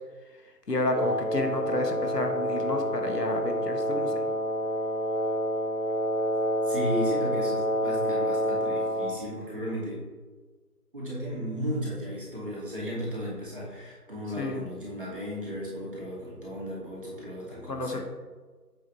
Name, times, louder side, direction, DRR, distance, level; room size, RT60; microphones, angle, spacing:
voice 1, 0.7-4.2 14.4-14.6 17.7-18.0, left 2 dB, 75° left, 4 dB, 1.3 m, -30 dB
Wind instrument woodwind instrument, 0.9-9.2, equal, 50° right, 0.6 m, -28 dB
voice 2, 6.6-10.0 10.9-18.0, equal, 35° right, -6 dB, 2.3 m, -35 dB
7.5 x 6.7 x 3.3 m, 1.4 s
figure-of-eight pair, 170°, 48 cm